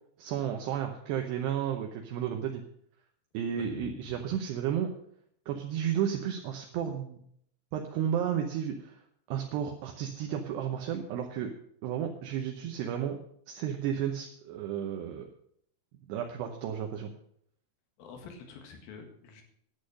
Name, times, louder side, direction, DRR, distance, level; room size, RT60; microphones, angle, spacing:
voice 1, 0.2-2.6 3.3-4.9 5.5-7.2 7.7-9.0 9.3-11.5 11.8-13.2 13.5-15.3 16.1-17.1, right 9 dB, 80° right, 3 dB, 2.5 m, -32 dB
voice 2, 3.6-4.4 18.0-19.4, left 5 dB, 60° left, 4 dB, 3.0 m, -47 dB
11.0 x 8.6 x 6.4 m, 0.68 s
omnidirectional pair, 5.9 m